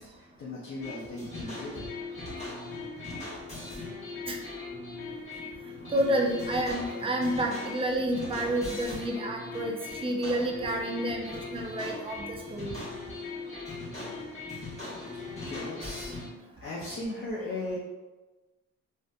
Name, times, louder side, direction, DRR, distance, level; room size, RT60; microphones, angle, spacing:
voice 1, 0.0-1.9 13.9-14.0 15.1-16.1 16.6-17.8, left 2 dB, 45° left, -6 dB, 0.6 m, -38 dB
sound 1, 0.8-16.3, left 3 dB, 20° left, 1.1 m, -39 dB
voice 2, 5.9-9.8 10.0-12.8, right 1 dB, 20° right, 1 dB, 0.4 m, -29 dB
2.6 x 2.1 x 2.4 m, 1.2 s
cardioid pair, 90°, 30 cm